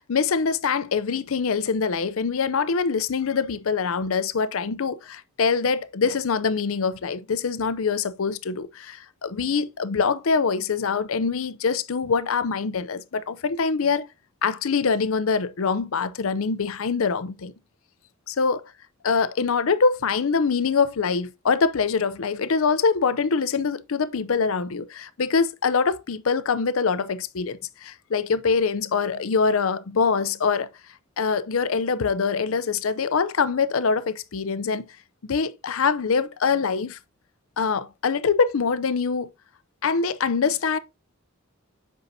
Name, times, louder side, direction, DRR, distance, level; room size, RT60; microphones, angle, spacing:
voice 1, 0.0-14.1 14.4-17.5 18.3-18.6 19.0-30.7 31.2-34.9 35.2-37.0 37.6-39.3 39.8-40.8, left 5 dB, 70° left, 0.6 m, -24 dB
8.0 x 5.5 x 2.7 m
head